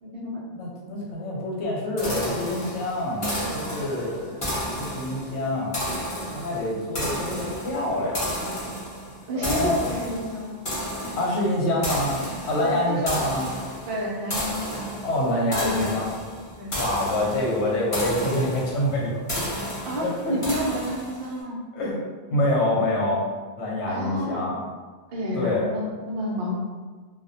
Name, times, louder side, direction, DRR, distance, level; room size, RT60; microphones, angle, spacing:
voice 1, 0.0-0.4 9.3-10.6 11.0-11.1 12.6-13.0 13.9-14.9 15.6-15.9 16.6-16.8 19.8-21.6 23.9-24.5 25.1-26.5, equal, 60° right, -4 dB, 0.7 m, -30 dB
voice 2, 0.5-4.4 4.8-5.7 6.3-8.3 9.3-9.9 11.2-12.2 12.5-13.5 15.0-16.1 16.7-19.5 19.7-20.3 21.7-22.0 22.3-23.2 23.6-24.5 25.3-25.6, left 1 dB, 85° left, -3 dB, 0.9 m, -26 dB
sound 1, 2.0-21.3, equal, 35° left, 0.7 m, -32 dB
2.3 x 2.1 x 2.6 m, 1.4 s
omnidirectional pair, 1.1 m